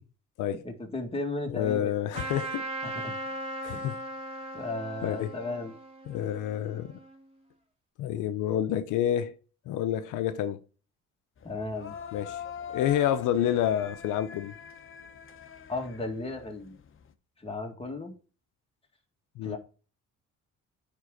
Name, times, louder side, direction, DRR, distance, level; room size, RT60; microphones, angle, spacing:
voice 1, 0.6-1.9 2.8-3.1 3.7-4.0 4.5-5.7 11.4-11.9 15.7-16.8 17.4-18.1 19.4-19.6, left 2 dB, 20° left, 2.0 m, -35 dB
voice 2, 1.5-3.1 3.6-3.9 5.0-5.3 6.1-7.0 8.0-9.3 9.7-10.6 12.1-12.4 12.7-14.5 19.4-19.6, left 10 dB, 90° left, 0.7 m, -29 dB
Trumpet, 2.1-7.2, right 1 dB, 20° right, 2.1 m, -38 dB
sound 1, 11.4-17.1, left 8 dB, 45° left, 0.9 m, -44 dB
9.1 x 3.7 x 5.1 m
cardioid pair, 90°, 30 cm